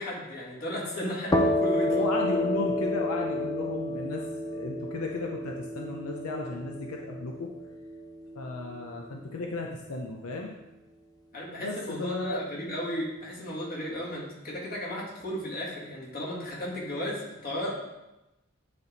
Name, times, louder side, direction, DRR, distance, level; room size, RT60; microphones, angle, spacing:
voice 1, 0.0-2.0 11.3-17.7, equal, 45° left, -5 dB, 2.2 m, -34 dB
sound 1, 1.3-8.8, left 1 dB, 20° left, 0.6 m, -30 dB
voice 2, 1.9-7.5 8.4-10.5 11.6-12.4, left 2 dB, 85° left, 0 dB, 0.7 m, -34 dB
9.4 x 3.5 x 4.0 m, 0.98 s
head